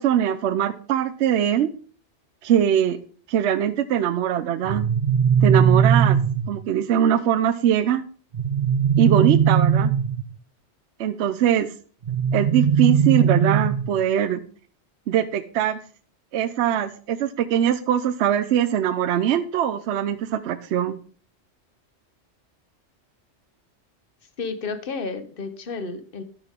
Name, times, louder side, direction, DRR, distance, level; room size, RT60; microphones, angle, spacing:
voice 1, 0.0-1.7 2.4-3.0 3.3-4.9 5.4-6.2 6.5-8.0 9.0-9.9 11.0-11.7 12.3-14.4 15.1-15.8 16.3-21.0, right 9 dB, 75° right, 12 dB, 0.9 m, -22 dB
sound 1, 4.6-6.6 8.3-10.3 12.1-14.0, right 7 dB, 55° right, 0.5 m, -19 dB
voice 2, 24.4-26.2, left 4 dB, 55° left, 9 dB, 1.1 m, -31 dB
12.5 x 5.9 x 3.6 m, 0.43 s
omnidirectional pair, 1.2 m